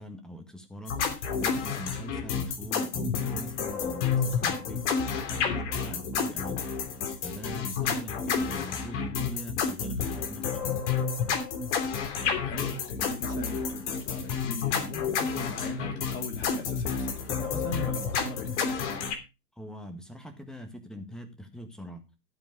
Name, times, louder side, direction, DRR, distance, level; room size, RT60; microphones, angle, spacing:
voice 1, 0.0-6.6 7.2-10.8 19.6-22.0, equal, ahead, 1.6 m, -42 dB
sound 1, 0.9-19.1, left 6 dB, 45° left, 3.1 m, -30 dB
voice 2, 12.2-19.1, left 3 dB, 25° left, 3.1 m, -39 dB
13.0 x 7.3 x 5.3 m
figure-of-eight pair, 115°, 48 cm